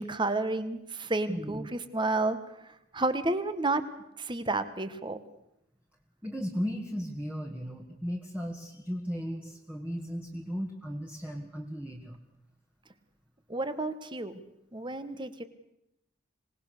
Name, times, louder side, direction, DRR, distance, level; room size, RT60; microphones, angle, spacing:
voice 1, 0.0-2.4 2.9-3.8 4.2-5.2 13.5-14.4 14.7-15.4, right 2 dB, 25° right, 12 dB, 1.4 m, -30 dB
voice 2, 1.3-1.7 6.2-12.2, equal, 10° right, 1 dB, 1.8 m, -36 dB
25.5 x 19.0 x 6.7 m, 0.83 s
head